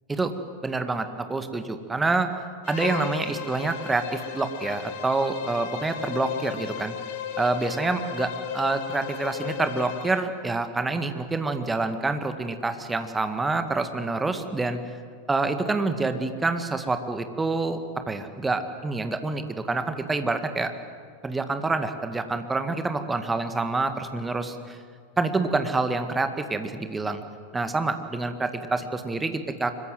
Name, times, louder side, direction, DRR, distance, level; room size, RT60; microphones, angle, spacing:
voice 1, 0.6-2.3 2.7-7.0 7.4-14.8 15.3-17.8 18.1-20.7 21.2-24.8 25.2-27.2 27.5-29.7, right 3 dB, 10° right, 8 dB, 1.8 m, -27 dB
Bowed string instrument, 2.6-10.3, left 8 dB, 50° left, 1.7 m, -35 dB
25.0 x 22.0 x 7.8 m, 2.1 s
figure-of-eight pair, 90°, 0 cm